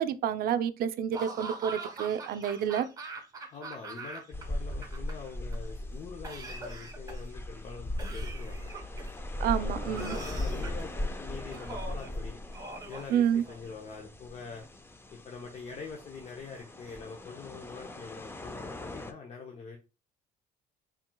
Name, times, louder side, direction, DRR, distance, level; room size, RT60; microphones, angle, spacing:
voice 1, 0.0-2.9 9.4-10.2 13.1-13.4, right 9 dB, 60° right, 0.5 m, -29 dB
Laughter / Cough, 1.1-4.4 4.7-5.5 6.2-7.4 8.0-9.2 9.9-10.9 11.5-12.1 12.5-13.7, right 3 dB, 20° right, 1.3 m, -42 dB
voice 2, 3.5-8.7 9.6-12.4 12.9-14.6 15.1-19.8, left 5 dB, 40° left, 0.7 m, -44 dB
sound 1, 4.3-19.1, left 1 dB, 15° left, 0.5 m, -38 dB
4.3 x 3.7 x 2.2 m
cardioid pair, 110°, 17 cm